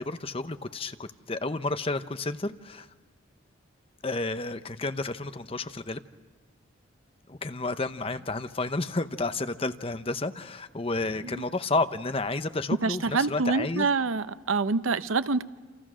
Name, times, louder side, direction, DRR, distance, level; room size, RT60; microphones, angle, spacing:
voice 1, 0.0-2.9 4.0-6.0 7.3-13.9, left 2 dB, 30° left, 10 dB, 0.8 m, -31 dB
voice 2, 12.8-15.4, right 4 dB, 80° right, 13 dB, 0.8 m, -26 dB
28.0 x 28.0 x 6.3 m, 1.3 s
head